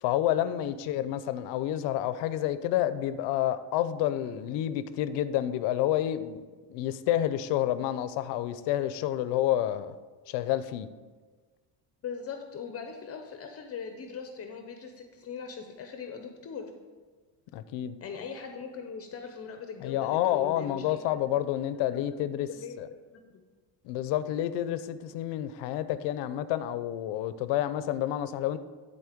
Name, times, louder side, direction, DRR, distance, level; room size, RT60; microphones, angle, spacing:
voice 1, 0.0-6.4 6.7-9.9 10.3-10.9 17.5-17.9 19.8-22.5 22.8-22.9 23.8-28.6, left 12 dB, 85° left, 0.6 m, -29 dB
voice 2, 12.0-16.7 18.0-21.3 21.9-22.7 23.1-23.4, left 6 dB, 35° left, 0.7 m, -40 dB
11.0 x 4.2 x 5.1 m
cardioid pair, 155°, 41 cm